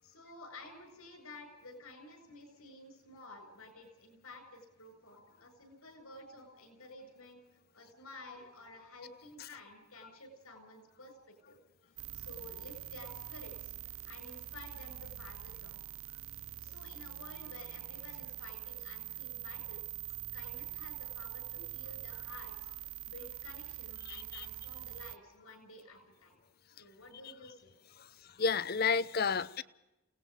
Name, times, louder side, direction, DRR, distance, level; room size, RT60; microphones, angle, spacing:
voice 1, 0.0-7.4 7.7-11.6 11.8-13.7 14.0-15.8 16.6-19.8 20.3-22.7 23.0-26.4 26.7-27.8 28.1-28.3, left 2 dB, 85° left, 7.2 m, -52 dB
sound 1, 12.0-25.2, right 15 dB, 75° right, 0.6 m, -44 dB
voice 2, 28.4-29.6, left 5 dB, 45° left, 0.7 m, -30 dB
29.0 x 19.0 x 5.2 m
head